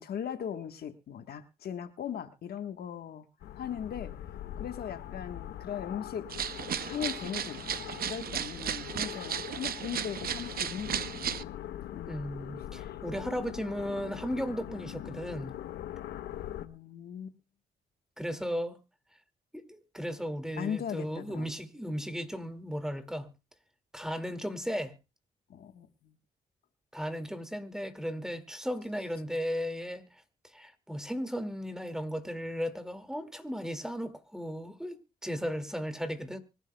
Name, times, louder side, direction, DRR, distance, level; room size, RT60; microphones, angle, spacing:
voice 1, 0.0-3.2 3.6-4.1 4.6-6.3 6.8-11.3 11.9-12.2 12.6-13.0 16.6-17.4 20.6-21.5 25.5-26.1, left 8 dB, 70° left, 1.3 m, -39 dB
sound 1, 3.4-16.7, left 12 dB, 90° left, 0.8 m, -42 dB
sound 2, 6.3-11.4, right 9 dB, 65° right, 0.7 m, -35 dB
voice 2, 12.1-15.6 18.2-18.8 19.5-23.3 23.9-25.0 26.9-30.0 30.4-36.4, equal, 5° right, 2.2 m, -35 dB
24.5 x 11.0 x 2.2 m
supercardioid pair, 60°, 17 cm